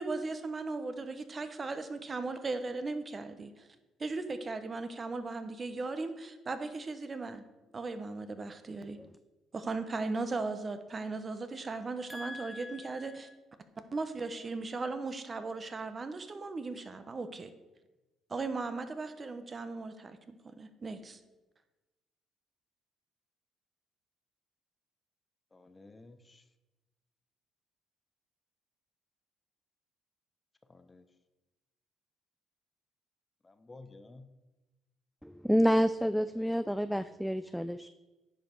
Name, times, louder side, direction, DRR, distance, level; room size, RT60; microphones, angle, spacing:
voice 1, 0.0-3.7 4.0-7.4 7.7-9.0 9.5-13.3 13.9-17.5 18.3-21.2, right 3 dB, 35° right, 9 dB, 0.9 m, -37 dB
voice 2, 12.1-13.1 35.2-37.9, equal, ahead, 11 dB, 0.3 m, -30 dB
voice 3, 25.5-26.4 30.7-31.0 33.4-34.3, left 2 dB, 25° left, 10 dB, 0.8 m, -53 dB
9.5 x 5.1 x 4.6 m, 1.1 s
supercardioid pair, 65°, 0 cm